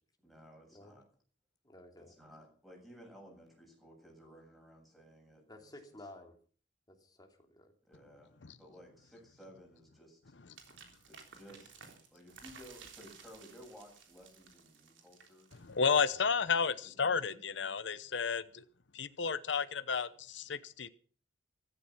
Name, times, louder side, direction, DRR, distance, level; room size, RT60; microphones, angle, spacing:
voice 1, 0.2-1.0 2.0-5.7 7.9-10.3 11.1-15.5 16.4-17.8 18.0-18.1, equal, ahead, 7.6 m, -57 dB
voice 2, 1.6-2.1 5.5-6.3 6.9-7.7, left 1 dB, 20° left, 3.1 m, -53 dB
sound 1, 10.6-16.1, right 5 dB, 80° right, 3.6 m, -56 dB
voice 3, 15.6-18.6 18.9-20.9, left 5 dB, 70° left, 0.9 m, -32 dB
15.0 x 14.0 x 5.9 m
head